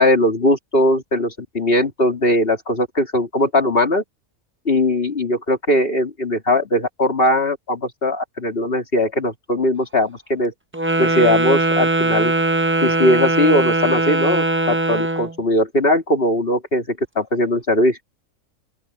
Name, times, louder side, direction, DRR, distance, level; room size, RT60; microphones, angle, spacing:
voice 1, 0.0-4.0 4.6-10.5 11.0-12.3 12.8-18.0, left 1 dB, 40° left, 3.2 m, -19 dB
Wind instrument woodwind instrument, 10.7-15.3, right 2 dB, 15° right, 0.5 m, -20 dB
open air
omnidirectional pair, 1.4 m